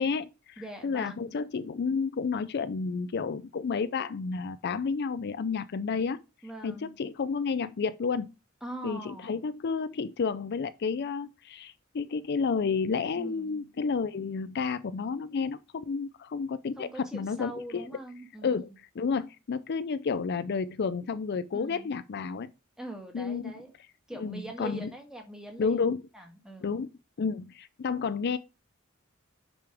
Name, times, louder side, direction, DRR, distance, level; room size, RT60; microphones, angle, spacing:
voice 1, 0.0-6.2 6.6-8.3 8.8-17.9 18.4-18.7 19.0-22.5 23.1-23.5 24.2-24.9 25.6-26.0 26.6-26.9 27.2-28.4, left 5 dB, 50° left, 0.4 m, -31 dB
voice 2, 0.6-1.3 6.4-6.9 8.6-9.5 13.1-13.7 16.8-18.8 21.5-21.9 22.8-23.7 24.1-25.8 26.1-26.8, right 1 dB, 5° right, 1.7 m, -42 dB
9.0 x 5.2 x 3.4 m
head